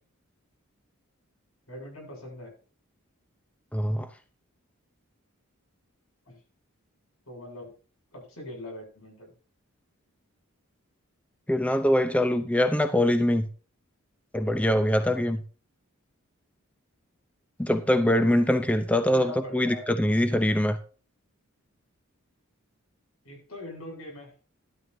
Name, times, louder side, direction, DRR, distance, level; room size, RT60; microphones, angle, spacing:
voice 1, 1.7-2.5 6.3-6.4 7.3-7.7 8.1-9.3 19.0-19.8 23.2-24.3, left 1 dB, 90° left, 7.8 m, -41 dB
voice 2, 3.7-4.1 11.5-13.5 14.3-15.4 17.6-20.8, left 1 dB, 5° left, 0.7 m, -23 dB
12.5 x 12.5 x 2.8 m
head